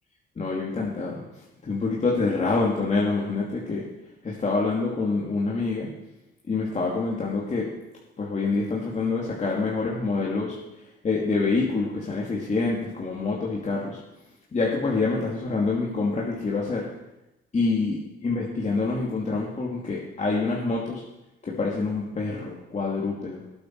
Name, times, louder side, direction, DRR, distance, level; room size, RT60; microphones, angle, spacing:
voice 1, 0.4-1.2 1.6-3.8 4.2-5.9 6.5-7.7 8.2-10.6 11.0-14.0 14.5-16.9 17.5-21.0 21.4-23.4, left 3 dB, 35° left, -3 dB, 2.4 m, -26 dB
18.5 x 8.4 x 4.7 m, 0.95 s
cardioid pair, 90°, 20 cm